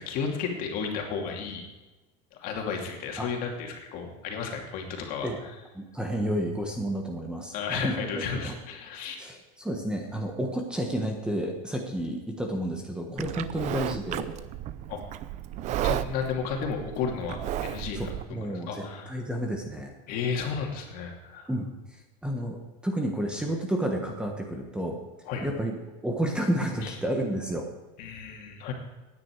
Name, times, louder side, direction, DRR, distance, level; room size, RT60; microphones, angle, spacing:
voice 1, 0.0-1.7 2.4-5.5 7.5-9.2 14.9-15.0 15.8-18.1 18.4-19.2 20.1-21.5 25.3-25.6 26.8-26.9 28.0-28.7, left 6 dB, 50° left, 2 dB, 2.7 m, -33 dB
voice 2, 5.7-8.5 9.2-14.3 17.9-19.9 21.5-22.6 22.8-25.0 25.4-27.7, right 1 dB, 5° right, 2 dB, 1.4 m, -31 dB
Livestock farm animals working animals, 13.2-18.2, right 12 dB, 40° right, 0.6 m, -33 dB
16.0 x 9.9 x 4.8 m, 1.2 s
supercardioid pair, 145°, 18 cm